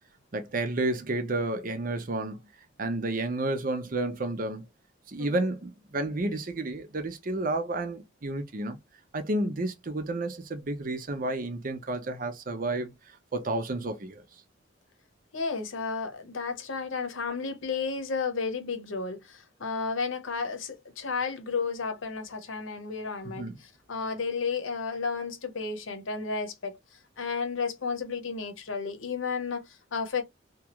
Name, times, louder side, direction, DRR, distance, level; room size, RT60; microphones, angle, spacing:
voice 1, 0.3-2.4 2.8-4.6 5.1-8.8 9.1-12.9 13.3-14.2 23.2-23.6, right 2 dB, 45° right, 0.6 m, -31 dB
voice 2, 5.2-5.5 15.3-26.8 27.2-30.2, left 5 dB, 80° left, 0.8 m, -32 dB
2.9 x 2.4 x 2.9 m
head